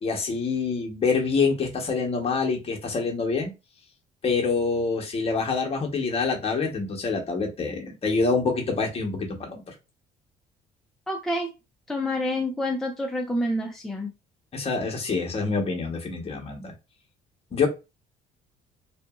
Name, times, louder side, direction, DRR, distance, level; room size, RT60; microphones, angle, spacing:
voice 1, 0.0-3.5 4.2-9.6 14.5-16.7 17.5-17.7, left 4 dB, 35° left, 1 dB, 1.0 m, -26 dB
voice 2, 11.1-11.5 11.9-14.1, left 1 dB, ahead, 0 dB, 0.5 m, -28 dB
2.8 x 2.5 x 2.4 m, 0.26 s
cardioid pair, 110°, 17 cm